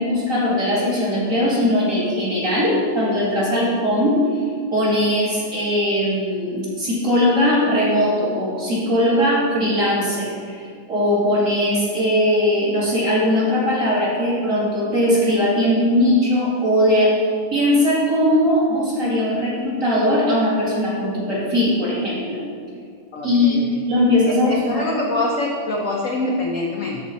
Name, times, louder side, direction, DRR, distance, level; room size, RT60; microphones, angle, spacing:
voice 1, 0.0-4.3 4.7-10.6 10.9-17.2 17.5-22.4 23.2-23.6 23.9-25.1, left 1 dB, 40° right, -8 dB, 2.6 m, -19 dB
voice 2, 23.1-23.8 24.3-27.0, left 2 dB, 65° left, -1 dB, 0.8 m, -25 dB
12.5 x 4.3 x 4.1 m, 2.1 s
omnidirectional pair, 2.3 m